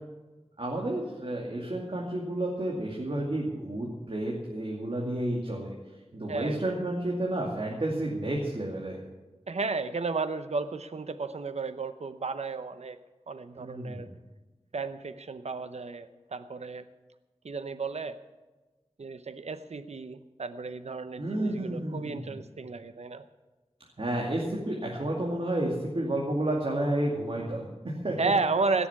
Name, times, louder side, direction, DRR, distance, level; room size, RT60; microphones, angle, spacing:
voice 1, 0.6-5.7 6.1-9.0 13.6-14.0 21.2-22.4 24.0-28.1, right 1 dB, 55° right, -2 dB, 2.4 m, -31 dB
voice 2, 9.5-13.0 13.3-14.1 14.7-16.9 17.4-18.2 19.0-23.2 28.2-28.9, right 4 dB, 75° right, 11 dB, 0.7 m, -33 dB
16.5 x 7.1 x 9.7 m, 1.2 s
wide cardioid pair, 55°, 11 cm